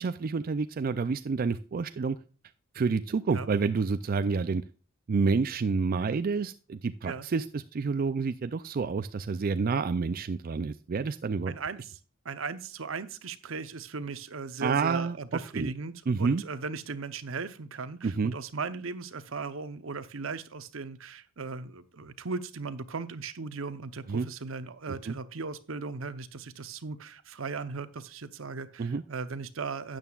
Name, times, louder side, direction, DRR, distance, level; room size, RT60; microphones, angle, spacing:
voice 1, 0.0-2.2 2.7-4.6 5.1-11.5 14.6-15.2 15.5-15.7 16.1-16.4 18.0-18.3 24.1-24.3 25.1-25.2 28.8-29.0, right 4 dB, 45° right, 11 dB, 0.4 m, -28 dB
voice 2, 11.5-12.0 12.2-30.0, right 4 dB, 75° right, 13 dB, 0.8 m, -37 dB
12.5 x 9.0 x 2.4 m, 0.36 s
head